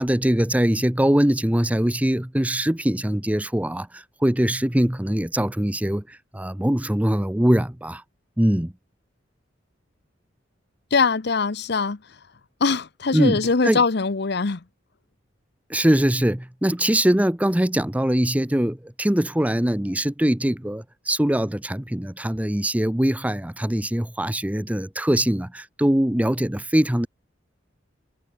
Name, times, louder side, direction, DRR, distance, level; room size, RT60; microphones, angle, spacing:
voice 1, 0.0-8.0 8.4-8.7 13.1-13.8 15.7-27.1, right 1 dB, 10° right, 0.7 m, -22 dB
voice 2, 10.9-12.0 12.6-14.6, left 4 dB, 60° left, 0.8 m, -22 dB
head